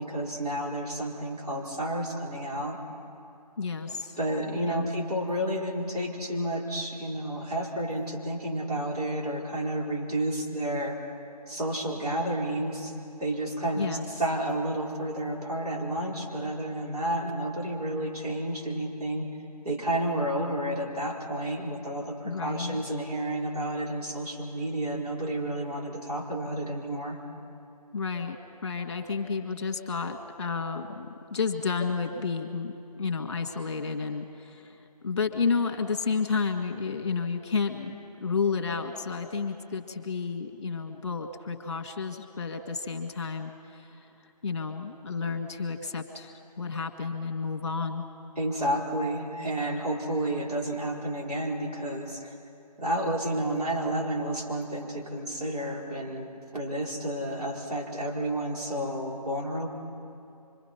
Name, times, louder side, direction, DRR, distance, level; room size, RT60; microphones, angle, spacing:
voice 1, 0.0-2.8 4.2-11.0 11.5-12.9 13.2-13.9 14.2-19.3 19.6-27.2 48.4-52.3 52.8-56.3 56.5-59.7, right 1 dB, 65° right, -3 dB, 4.6 m, -31 dB
voice 2, 3.6-4.2 4.7-4.9 13.8-14.1 22.2-22.8 27.9-37.9 38.2-44.1 44.4-48.1, left 5 dB, 45° left, 3 dB, 1.8 m, -31 dB
25.5 x 23.5 x 5.7 m, 2.7 s
figure-of-eight pair, 160°, 21 cm